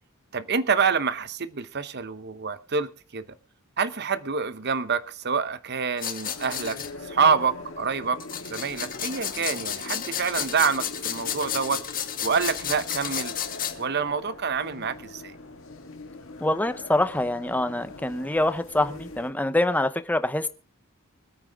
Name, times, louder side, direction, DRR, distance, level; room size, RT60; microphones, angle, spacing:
voice 1, 0.3-3.3 3.8-8.2 8.5-13.3 13.8-15.3, right 5 dB, 50° right, 14 dB, 0.9 m, -27 dB
sound 1, 6.0-6.9 8.2-13.7, left 9 dB, 40° left, 1.8 m, -32 dB
sound 2, 6.2-19.3, left 2 dB, 65° left, 1.9 m, -42 dB
voice 2, 16.4-20.5, left 1 dB, 10° left, 11 dB, 0.8 m, -25 dB
24.5 x 8.9 x 3.5 m, 0.36 s
head